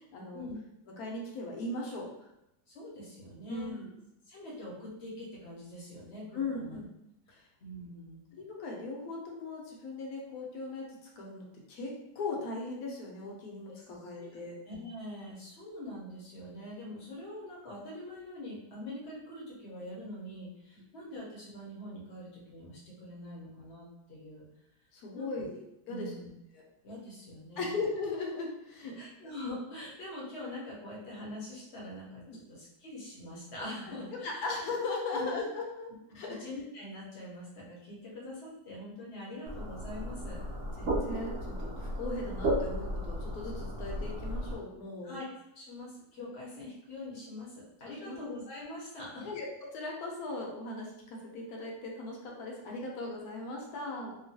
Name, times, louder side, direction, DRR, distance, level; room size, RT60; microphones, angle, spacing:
voice 1, 0.1-0.5 1.0-2.1 3.5-3.9 6.3-6.8 7.3-7.4 8.4-10.8 11.2-14.6 20.7-20.8 24.9-26.1 26.5-26.6 27.6-29.1 32.3-32.4 34.2-36.4 40.8-45.2 46.2-46.3 48.0-48.2 49.2-54.2, left 3 dB, 70° left, -1 dB, 1.1 m, -38 dB
voice 2, 2.7-3.8 4.3-6.8 7.6-8.2 14.2-14.3 14.6-24.5 25.1-25.4 25.9-26.3 26.8-27.8 29.0-32.2 32.5-34.5 35.1-35.4 36.1-40.4 45.0-45.2 45.6-49.3, left 1 dB, 50° left, -6 dB, 0.9 m, -44 dB
sound 1, 39.5-44.5, right 1 dB, 60° right, 0.8 m, -34 dB
2.9 x 2.2 x 2.7 m, 0.84 s
omnidirectional pair, 1.8 m